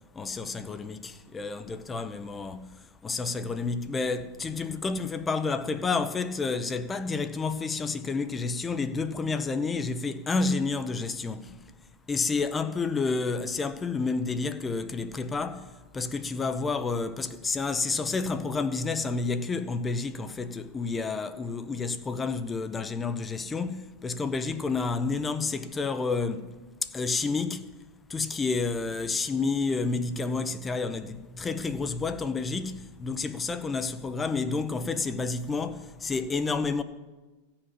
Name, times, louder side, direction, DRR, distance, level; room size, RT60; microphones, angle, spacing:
voice 1, 0.1-2.7 3.0-11.6 12.1-26.5 26.8-27.7 28.1-36.8, left 4 dB, 15° left, 0.8 m, -30 dB
15.5 x 5.8 x 8.1 m
figure-of-eight pair, 90°, 0 cm